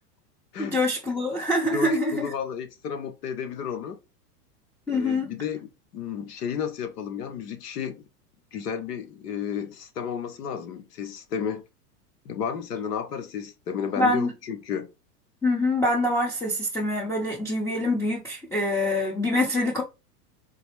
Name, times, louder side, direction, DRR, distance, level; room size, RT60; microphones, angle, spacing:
voice 1, 0.6-2.3 4.9-5.3 14.0-14.3 15.4-19.8, left 1 dB, 5° left, 0.6 m, -25 dB
voice 2, 1.7-4.0 4.9-8.0 8.5-11.6 12.2-14.9, left 7 dB, 80° left, 1.0 m, -32 dB
4.1 x 2.0 x 3.0 m
hypercardioid pair, 115°, 48 cm